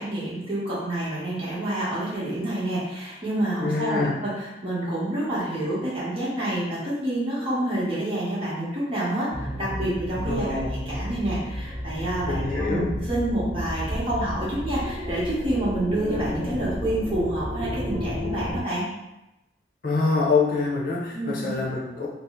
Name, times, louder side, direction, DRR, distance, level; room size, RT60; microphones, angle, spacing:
voice 1, 0.0-18.9 21.1-21.5, right 1 dB, 30° right, -8 dB, 1.0 m, -28 dB
voice 2, 3.6-4.1 10.3-10.7 12.3-12.9 19.8-22.1, left 4 dB, 50° left, -6 dB, 0.7 m, -25 dB
sound 1, 9.3-18.6, left 1 dB, 5° left, 0.4 m, -32 dB
2.8 x 2.0 x 3.5 m, 0.95 s
head